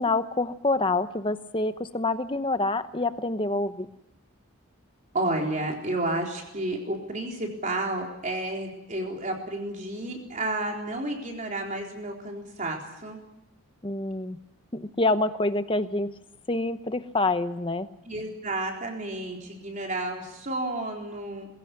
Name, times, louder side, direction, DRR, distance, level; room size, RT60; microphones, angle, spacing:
voice 1, 0.0-3.9 13.8-14.4 14.7-16.1 16.5-17.9, left 2 dB, 25° left, 11 dB, 0.9 m, -27 dB
voice 2, 5.1-13.2 18.1-21.5, right 2 dB, 35° right, 1 dB, 4.1 m, -31 dB
21.5 x 16.5 x 9.7 m, 0.88 s
head